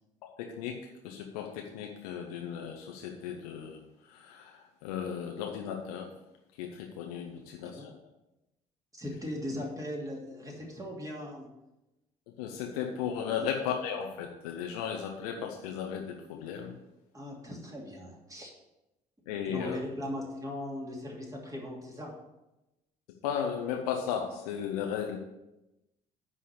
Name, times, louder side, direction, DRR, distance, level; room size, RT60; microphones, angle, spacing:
voice 1, 0.2-3.8 4.1-6.1 6.6-8.0 12.4-16.7 19.3-19.8 23.2-25.2, left 8 dB, 70° left, 2 dB, 0.8 m, -35 dB
voice 2, 8.9-11.5 17.1-18.5 19.5-22.1, left 1 dB, 15° right, -1 dB, 2.8 m, -39 dB
9.7 x 4.3 x 6.9 m, 0.94 s
figure-of-eight pair, 50°, 20 cm